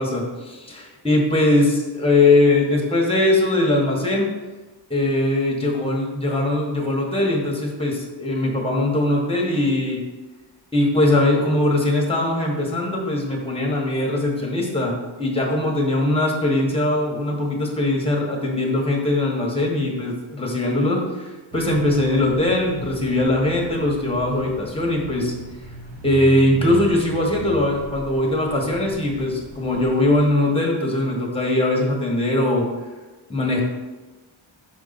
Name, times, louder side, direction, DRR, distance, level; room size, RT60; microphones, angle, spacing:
voice 1, 0.0-4.3 4.9-10.0 10.7-25.3 26.0-32.7 33.3-33.6, left 1 dB, 10° left, -1 dB, 1.3 m, -21 dB
sound 1, 21.5-30.3, right 1 dB, 50° right, 1.2 m, -38 dB
6.2 x 4.5 x 4.1 m, 1.2 s
wide cardioid pair, 125°, 47 cm